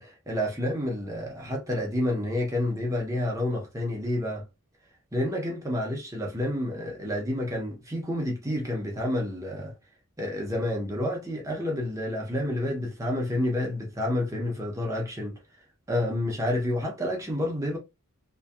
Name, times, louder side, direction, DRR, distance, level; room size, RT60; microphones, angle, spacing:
voice 1, 0.0-4.5 5.1-9.7 10.2-15.4 15.9-17.8, left 1 dB, 15° right, 0.5 m, -29 dB
2.5 x 2.2 x 2.2 m
head